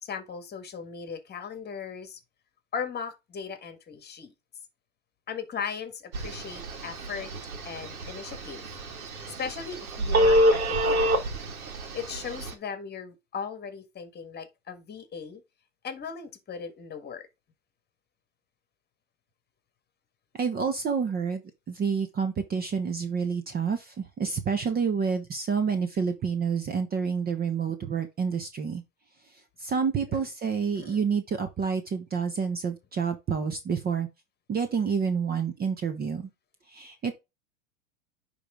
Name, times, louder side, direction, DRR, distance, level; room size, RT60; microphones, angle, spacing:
voice 1, 0.0-2.2 2.7-4.3 5.3-7.3 7.6-8.6 9.4-11.2 11.9-15.4 15.8-17.3 30.1-30.2 30.8-31.0, left 6 dB, 25° left, 1.6 m, -37 dB
Telephone, 6.1-12.5, equal, 80° right, 1.8 m, -27 dB
voice 2, 20.4-21.4 21.7-28.8 29.6-34.1 34.5-36.3 36.7-37.1, right 6 dB, 20° right, 0.9 m, -28 dB
10.0 x 3.5 x 3.6 m
hypercardioid pair, 105°, 42 cm